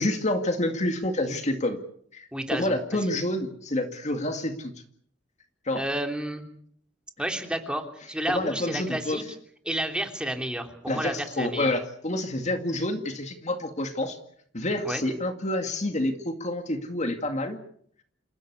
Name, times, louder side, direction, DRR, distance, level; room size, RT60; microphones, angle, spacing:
voice 1, 0.0-1.8 2.1-4.7 5.7-5.8 8.3-9.2 10.9-14.2 14.5-17.6, left 1 dB, 40° left, 6 dB, 2.2 m, -28 dB
voice 2, 2.3-3.1 5.7-6.4 7.2-9.2 9.6-11.7 14.8-15.0, right 1 dB, 5° right, 4 dB, 3.1 m, -31 dB
28.0 x 15.5 x 8.3 m, 0.65 s
head